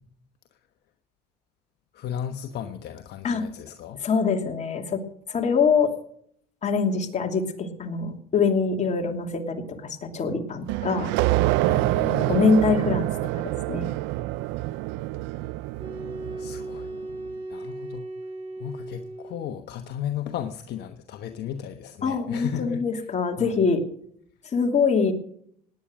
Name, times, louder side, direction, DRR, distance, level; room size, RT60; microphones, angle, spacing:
voice 1, 1.9-4.0 11.6-12.3 16.3-16.9 17.5-18.0 18.6-22.8 23.4-23.6, left 9 dB, 60° left, 7 dB, 1.2 m, -35 dB
voice 2, 4.0-5.0 5.3-5.9 6.6-11.1 12.3-13.1 13.3-13.9 22.0-23.8 24.5-25.1, left 5 dB, 35° left, 3 dB, 2.8 m, -24 dB
sound 1, 10.7-17.0, right 17 dB, 75° right, 0.5 m, -26 dB
sound 2, 15.7-19.7, right 2 dB, 25° right, 6.8 m, -37 dB
18.0 x 10.0 x 6.2 m, 0.66 s
supercardioid pair, 90°, 19 cm